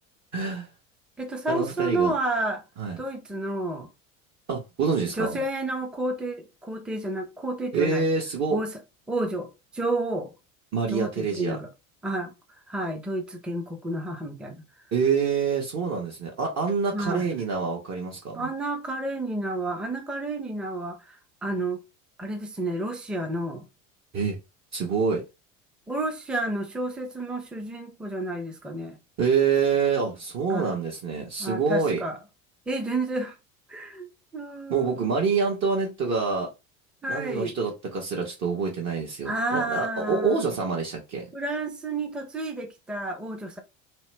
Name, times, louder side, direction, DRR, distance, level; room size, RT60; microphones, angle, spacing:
voice 1, 0.3-0.7 1.5-2.1 2.8-3.0 4.5-5.4 7.7-8.6 10.7-11.6 14.9-18.5 24.1-24.4 24.7-25.2 29.2-32.0 34.7-36.5 37.1-41.2, right 5 dB, 40° right, 1.1 m, -26 dB
voice 2, 1.2-2.6 3.0-3.9 5.2-8.1 8.5-8.7 9.1-10.3 10.9-11.7 12.0-12.3 12.7-14.6 16.9-17.4 18.3-21.2 21.4-21.8 22.2-23.7 25.9-29.0 30.5-30.8 31.4-32.2 32.7-33.4 33.7-35.2 37.0-37.6 39.2-40.4 41.3-43.6, right 2 dB, ahead, 0.5 m, -30 dB
2.8 x 2.1 x 3.2 m
hypercardioid pair, 85°, 40 cm